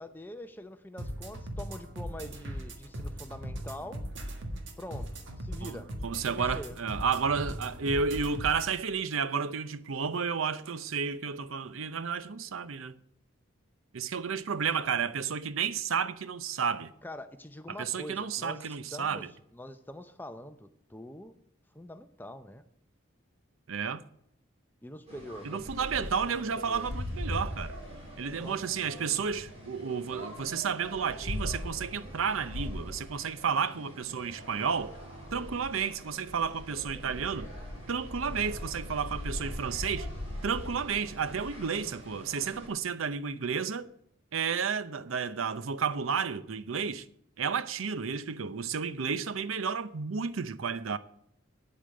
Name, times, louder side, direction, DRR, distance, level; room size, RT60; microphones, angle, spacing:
voice 1, 0.0-4.0 4.8-5.1 5.4-5.9 6.3-6.8 14.8-15.0 17.0-19.3 19.5-21.3 21.7-22.6 24.8-25.7 26.0-26.9 28.4-28.6, left 1 dB, 10° left, 0.6 m, -44 dB
sound 1, 1.0-8.8, equal, 65° right, 1.7 m, -39 dB
voice 2, 5.6-12.9 13.9-16.9 17.7-19.3 23.7-24.0 25.4-27.8 28.2-34.9 35.3-37.5 37.9-40.1 40.4-43.9 44.3-47.0 47.4-51.0, right 6 dB, 90° right, 0.7 m, -32 dB
sound 2, 25.1-42.7, left 1 dB, 30° right, 4.8 m, -41 dB
9.3 x 8.4 x 7.6 m
head